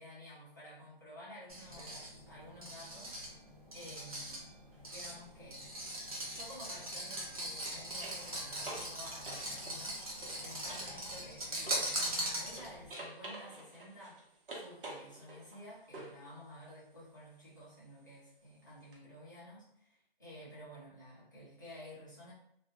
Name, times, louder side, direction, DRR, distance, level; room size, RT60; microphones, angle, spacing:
voice 1, 0.0-3.4 3.7-4.5 4.9-5.6 6.2-14.2 14.5-22.3, equal, 20° left, -10 dB, 0.6 m, -52 dB
sound 1, 1.5-12.9, right 1 dB, 40° right, 0.6 m, -41 dB
sound 2, 4.7-5.0 7.3-12.2 12.5-16.3 18.9-19.0, right 2 dB, 60° right, 0.9 m, -49 dB
2.3 x 2.1 x 2.9 m, 0.72 s
hypercardioid pair, 175°, 30 cm